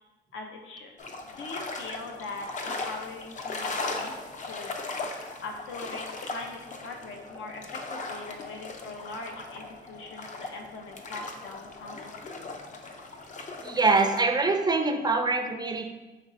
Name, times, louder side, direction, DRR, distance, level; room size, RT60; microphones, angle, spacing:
voice 1, 0.3-1.0 1.3-12.4, left 3 dB, 75° left, 3 dB, 0.7 m, -42 dB
sound 1, 1.0-14.2, left 3 dB, 40° left, 0.5 m, -38 dB
voice 2, 13.6-15.9, right 3 dB, 20° right, 5 dB, 0.3 m, -24 dB
5.2 x 3.1 x 2.5 m, 1.1 s
cardioid pair, 90°, 20 cm